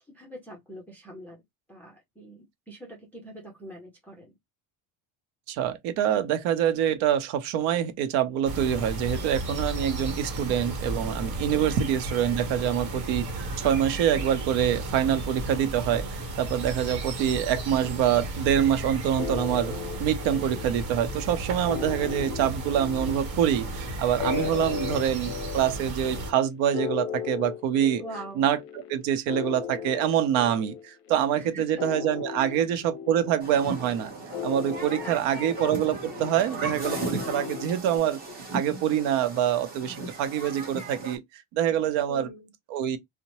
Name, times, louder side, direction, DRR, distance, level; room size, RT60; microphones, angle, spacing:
voice 1, 0.1-1.4 1.7-4.4 11.5-11.8 24.4-24.9 28.0-28.5 31.3-31.8 32.4-32.7 35.0-35.5 42.1-42.5, right 1 dB, 5° left, 0.4 m, -44 dB
voice 2, 5.5-19.7 20.0-28.0 28.4-28.6 28.9-34.1 34.4-38.2 38.5-42.3 42.7-43.0, right 10 dB, 75° right, 0.7 m, -25 dB
sound 1, 8.5-26.3, right 2 dB, 55° right, 1.1 m, -34 dB
sound 2, 19.2-38.0, left 8 dB, 55° left, 0.6 m, -37 dB
Human group actions, 33.4-41.2, right 3 dB, 20° right, 1.0 m, -37 dB
2.8 x 2.1 x 2.8 m
cardioid pair, 160°, 47 cm